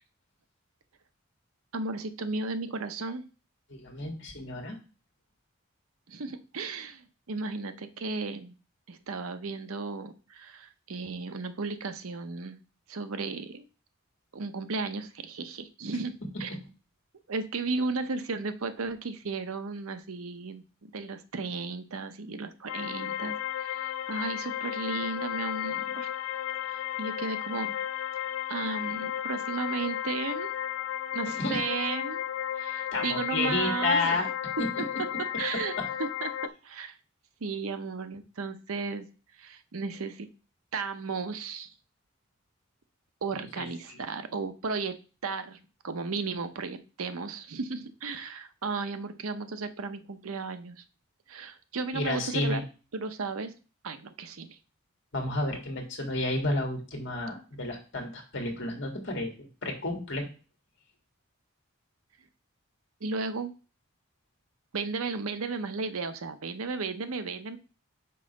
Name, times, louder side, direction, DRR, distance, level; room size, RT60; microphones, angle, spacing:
voice 1, 1.7-3.2 6.1-8.6 8.9-12.6 12.9-13.7 14.3-16.1 16.4-16.6 17.3-26.1 26.6-27.8 28.5-30.5 31.1-32.2 32.6-34.2 34.8-34.9 35.4-36.3 36.6-37.0 37.4-39.1 39.4-40.3 40.7-41.7 43.2-45.0 45.2-45.6 45.8-50.8 51.3-52.6 52.9-53.5 53.8-54.6 63.0-63.5 64.7-67.6, right 4 dB, 80° right, 9 dB, 0.7 m, -34 dB
voice 2, 3.7-4.8 31.4-31.6 32.9-34.3 34.6-34.7 43.6-44.0 51.9-52.6 55.1-59.3 59.6-60.3, left 2 dB, 55° left, 1 dB, 1.8 m, -31 dB
sound 1, 22.7-36.5, left 11 dB, 70° left, 0.4 m, -34 dB
5.5 x 3.8 x 5.2 m, 0.35 s
head